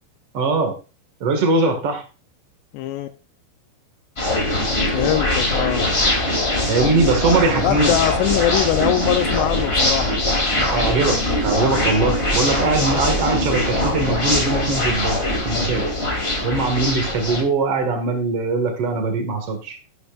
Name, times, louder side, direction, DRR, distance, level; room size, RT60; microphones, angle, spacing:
voice 1, 0.3-0.7 1.2-2.0 6.7-8.0 10.6-11.2 11.4-15.8 16.4-19.8, right 3 dB, 60° right, 4 dB, 1.5 m, -21 dB
voice 2, 2.7-3.1 4.9-5.9 7.6-10.1, left 12 dB, 85° left, 8 dB, 2.4 m, -22 dB
sound 1, 4.2-17.4, left 1 dB, 25° left, 1.2 m, -22 dB
11.5 x 11.0 x 2.4 m, 0.32 s
omnidirectional pair, 5.6 m